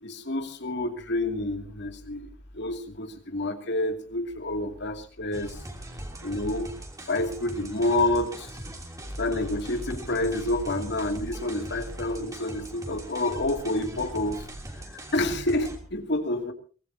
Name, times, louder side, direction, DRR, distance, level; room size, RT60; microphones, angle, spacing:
voice 1, 0.0-5.6 6.2-6.7 7.1-8.5 9.2-14.5 15.1-16.5, left 1 dB, 65° left, 5 dB, 2.6 m, -28 dB
sound 1, 5.3-15.8, right 1 dB, 20° right, 3.1 m, -40 dB
23.5 x 20.0 x 2.8 m, 0.36 s
head